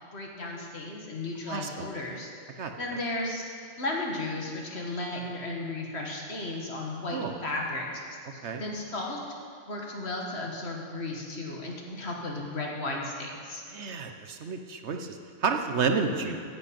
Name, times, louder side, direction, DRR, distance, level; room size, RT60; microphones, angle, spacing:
voice 1, 0.1-2.3 2.8-3.4 3.8-9.2 9.7-13.6 16.0-16.4, left 2 dB, 55° left, -1 dB, 2.1 m, -35 dB
voice 2, 1.5-1.9 2.6-2.7 7.1-7.3 8.4-8.6 13.7-15.2 15.4-16.4, right 5 dB, 65° right, 5 dB, 1.1 m, -30 dB
10.5 x 8.4 x 8.9 m, 2.1 s
omnidirectional pair, 1.3 m